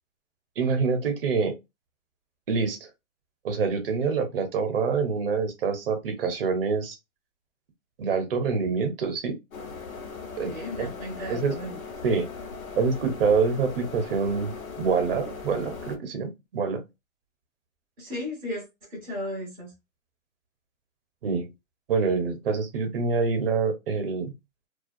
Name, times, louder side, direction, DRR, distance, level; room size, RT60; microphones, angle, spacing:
voice 1, 0.6-1.5 2.5-2.8 3.4-7.0 8.0-9.4 10.4-10.9 11.3-11.5 12.0-12.3 12.8-16.8 21.2-21.5 21.9-24.3, right 5 dB, 45° right, 0.7 m, -26 dB
sound 1, 9.5-16.0, left 5 dB, 80° left, 0.9 m, -39 dB
voice 2, 10.4-11.8 18.0-19.7, left 1 dB, 5° right, 0.4 m, -35 dB
2.3 x 2.1 x 2.5 m
hypercardioid pair, 145°, 41 cm